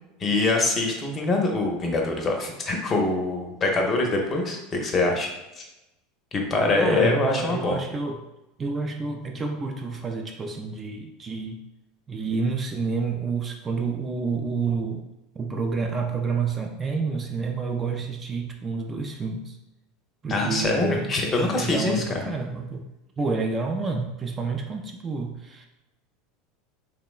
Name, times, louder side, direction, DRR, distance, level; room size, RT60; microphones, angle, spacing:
voice 1, 0.2-5.3 5.6-5.7 6.3-7.8 20.3-22.3, left 2 dB, 30° left, 2 dB, 0.5 m, -24 dB
voice 2, 6.8-8.2 8.6-11.6 12.1-15.1 15.4-19.6 20.2-22.9 23.2-25.7, right 4 dB, 25° right, 3 dB, 0.3 m, -29 dB
2.9 x 2.1 x 2.3 m, 0.95 s
hypercardioid pair, 90°, 0 cm